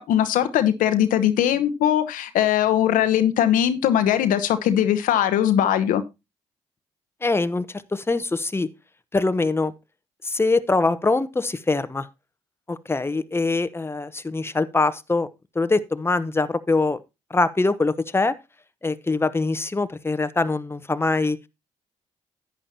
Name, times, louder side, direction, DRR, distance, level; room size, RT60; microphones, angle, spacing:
voice 1, 0.0-6.0, left 10 dB, 75° left, 0.9 m, -20 dB
voice 2, 7.2-8.7 9.1-9.7 10.2-12.1 12.7-15.3 15.5-17.0 17.3-18.4 18.8-21.4, left 3 dB, 15° left, 0.9 m, -23 dB
11.0 x 8.8 x 2.8 m
hypercardioid pair, 50°, 14 cm